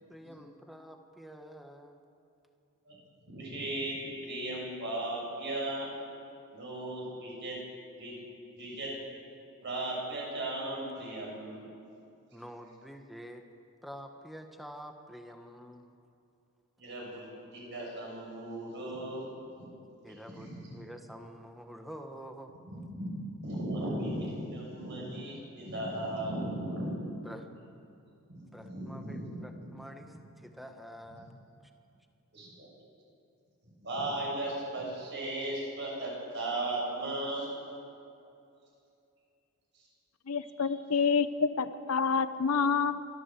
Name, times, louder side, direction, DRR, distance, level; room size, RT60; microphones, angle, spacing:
voice 1, 0.0-2.0 12.3-13.4 13.8-15.9 20.0-22.5 27.2-27.5 28.4-31.4, equal, ahead, 5 dB, 1.3 m, -48 dB
voice 2, 3.3-5.9 6.5-7.6 8.0-8.2 8.5-8.9 9.6-11.7 16.8-19.3 19.6-19.7 20.1-20.8 22.7-27.1 28.3-29.7 32.3-32.7 33.8-37.5 40.6-40.7, right 1 dB, 55° right, -3 dB, 7.2 m, -37 dB
voice 3, 40.3-43.0, left 5 dB, 85° left, 12 dB, 0.8 m, -28 dB
26.5 x 13.5 x 7.7 m, 2.6 s
head